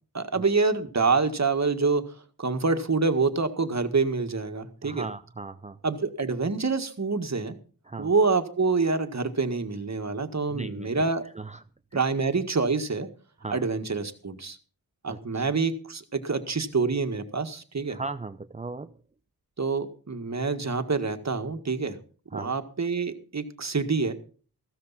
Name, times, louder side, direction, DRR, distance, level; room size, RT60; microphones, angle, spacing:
voice 1, 0.1-2.1 2.4-5.1 5.8-7.6 8.0-11.3 11.9-13.1 13.5-14.6 15.0-18.0 19.6-22.0 22.3-24.1, right 4 dB, 45° right, 8 dB, 1.8 m, -26 dB
voice 2, 4.8-5.8 7.9-8.1 10.5-11.0 11.4-11.6 11.9-12.0 13.4-13.7 15.1-15.5 17.9-18.9 22.3-22.5, right 3 dB, 20° right, 11 dB, 0.6 m, -37 dB
15.0 x 13.5 x 4.2 m, 0.41 s
cardioid pair, 60°, 37 cm